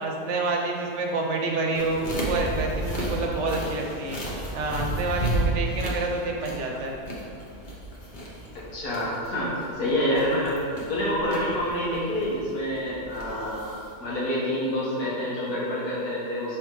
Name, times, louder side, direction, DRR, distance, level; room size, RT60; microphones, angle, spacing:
voice 1, 0.0-4.2 4.5-7.0, right 3 dB, 55° right, 0 dB, 1.0 m, -28 dB
sound 1, 1.7-13.9, right 1 dB, 35° left, 1.0 m, -33 dB
voice 2, 8.5-10.6 10.9-13.7 14.0-16.6, equal, 90° left, -7 dB, 1.9 m, -27 dB
6.2 x 3.5 x 4.7 m, 2.6 s
omnidirectional pair, 1.6 m